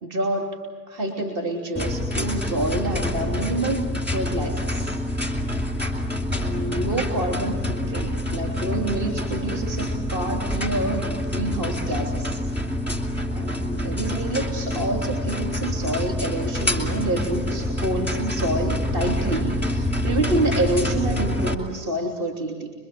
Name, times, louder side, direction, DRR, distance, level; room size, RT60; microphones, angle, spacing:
voice 1, 0.0-0.6 0.9-4.9 6.3-12.4 13.3-22.7, right 1 dB, 35° right, 2 dB, 3.2 m, -28 dB
sound 1, 1.7-21.5, left 1 dB, 5° right, 2.7 m, -26 dB
26.0 x 23.0 x 7.6 m, 1.5 s
supercardioid pair, 135°, 49 cm